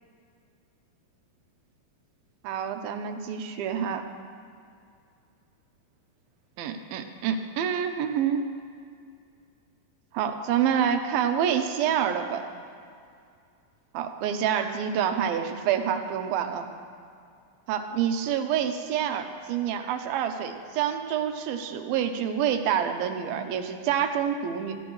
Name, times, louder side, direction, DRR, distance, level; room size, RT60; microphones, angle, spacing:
voice 1, 2.4-4.0 6.6-8.5 10.1-12.4 13.9-16.7 17.7-24.8, right 8 dB, 80° right, 6 dB, 2.7 m, -27 dB
24.0 x 16.0 x 3.2 m, 2.3 s
omnidirectional pair, 4.4 m